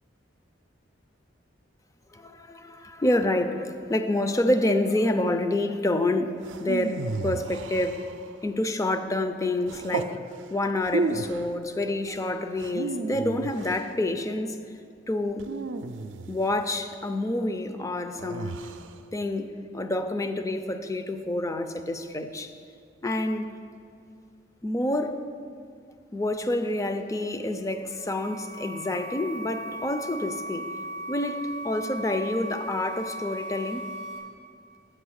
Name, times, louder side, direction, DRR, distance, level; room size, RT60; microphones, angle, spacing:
voice 1, 2.1-8.1 8.4-14.6 15.1-15.5 16.3-18.6 19.1-22.5 23.0-23.5 24.6-25.2 26.1-30.7 31.1-33.9, left 1 dB, 15° left, 0.4 m, -28 dB
sound 1, 6.4-8.4 9.7-10.2 10.8-11.5 12.6-13.9 15.4-16.6 18.2-19.0, right 3 dB, 85° right, 0.4 m, -33 dB
sound 2, 27.7-34.2, right 1 dB, 70° left, 2.2 m, -37 dB
7.7 x 5.7 x 6.4 m
head